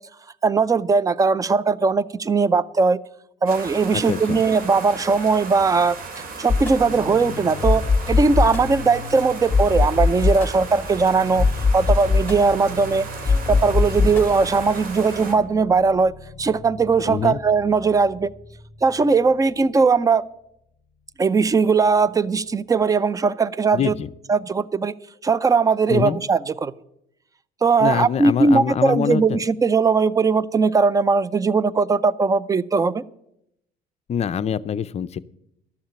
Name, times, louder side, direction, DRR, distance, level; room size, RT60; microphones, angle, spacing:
voice 1, 0.4-3.0 3.4-6.0 6.4-7.8 8.1-11.5 11.7-13.0 13.5-16.1 16.4-18.3 18.8-20.2 21.2-23.9 24.3-24.9 25.2-26.7 27.6-33.0, right 4 dB, 20° right, 20 dB, 0.5 m, -19 dB
sound 1, 3.5-15.3, right 4 dB, 60° right, 2.5 m, -36 dB
voice 2, 3.9-4.4 17.1-17.4 23.7-24.1 25.9-26.2 27.8-29.4 34.1-35.2, left 8 dB, 40° left, 16 dB, 0.5 m, -24 dB
sound 2, 6.5-19.1, left 4 dB, 10° left, 2.8 m, -24 dB
12.5 x 7.2 x 8.7 m, 0.78 s
cardioid pair, 110°, 17 cm